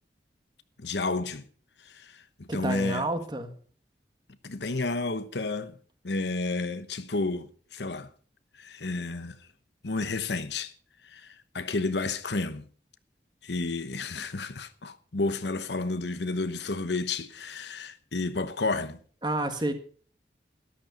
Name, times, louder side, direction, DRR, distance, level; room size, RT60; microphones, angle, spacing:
voice 1, 0.8-1.4 1.9-3.0 4.4-5.7 6.0-8.1 8.6-9.4 9.8-10.7 11.0-12.7 13.4-19.0, left 3 dB, 80° left, 1.0 m, -31 dB
voice 2, 2.5-3.5 19.2-19.7, right 1 dB, 25° right, 1.6 m, -29 dB
13.0 x 12.0 x 5.3 m
head